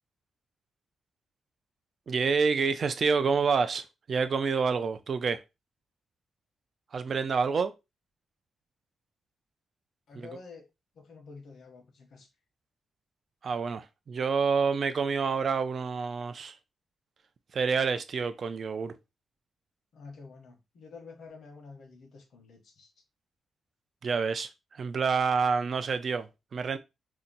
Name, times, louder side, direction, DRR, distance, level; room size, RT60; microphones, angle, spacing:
voice 1, 2.1-5.4 6.9-7.7 10.1-10.3 13.4-16.6 17.5-18.9 24.0-26.8, right 5 dB, 50° right, 0.4 m, -28 dB
voice 2, 10.1-10.6 10.9-12.3 19.9-22.9, left 4 dB, 75° left, 1.0 m, -49 dB
2.8 x 2.1 x 3.9 m
cardioid pair, 110°, 0 cm